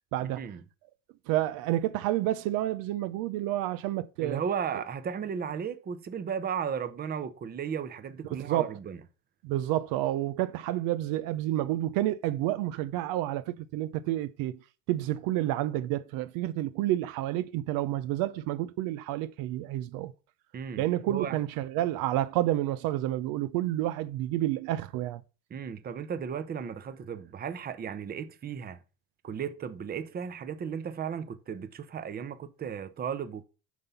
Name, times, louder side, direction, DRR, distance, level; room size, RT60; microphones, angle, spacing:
voice 1, 0.1-0.5 1.3-4.4 8.5-8.8 9.4-14.6 14.9-20.1 20.8-25.2, right 14 dB, 65° right, 0.7 m, -29 dB
voice 2, 4.2-9.0 20.5-21.4 25.5-28.8 29.2-33.4, right 7 dB, 25° right, 0.8 m, -35 dB
9.4 x 4.0 x 7.0 m
supercardioid pair, 125°, 38 cm